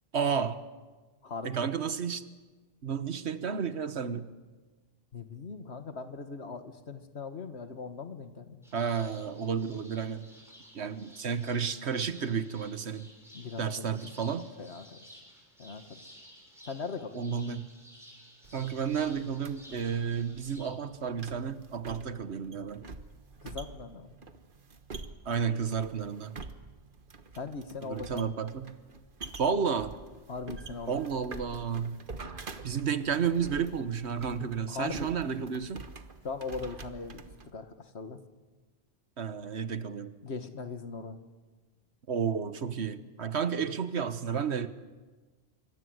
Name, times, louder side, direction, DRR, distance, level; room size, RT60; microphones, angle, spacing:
voice 1, 0.1-0.6 1.4-2.3 2.8-4.3 8.7-10.3 10.7-13.1 13.6-14.5 17.1-17.7 18.5-22.9 25.2-26.4 27.8-28.8 29.4-29.9 30.9-32.0 32.6-35.8 39.2-40.1 42.1-44.7, right 6 dB, 85° right, 12 dB, 1.5 m, -32 dB
voice 2, 1.2-1.9 5.1-8.6 13.3-13.9 14.6-15.0 15.6-16.0 16.7-17.2 23.4-24.1 27.4-28.3 30.3-31.0 34.4-35.1 36.2-37.2 37.5-38.2 40.2-41.2, left 4 dB, 90° left, 9 dB, 1.9 m, -40 dB
sound 1, 8.6-20.7, equal, ahead, 6.6 m, -54 dB
sound 2, 18.4-37.5, right 4 dB, 55° right, 1.4 m, -47 dB
26.5 x 24.5 x 8.0 m, 1.3 s
omnidirectional pair, 1.1 m